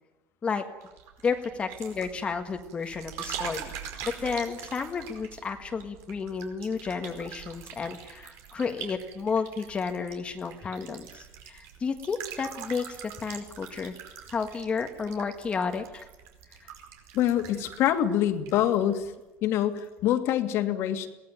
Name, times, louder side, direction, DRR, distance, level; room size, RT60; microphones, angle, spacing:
sound 1, 0.8-19.1 19.4-19.9, right 8 dB, 70° right, 4.9 m, -43 dB
voice 1, 1.2-3.7 4.0-14.0 14.3-16.1, left 5 dB, 20° left, 5 dB, 1.7 m, -32 dB
voice 2, 17.1-19.1 19.4-21.1, left 11 dB, 60° left, 7 dB, 2.5 m, -25 dB
23.0 x 18.0 x 9.4 m, 1.1 s
cardioid pair, 165°, 5 cm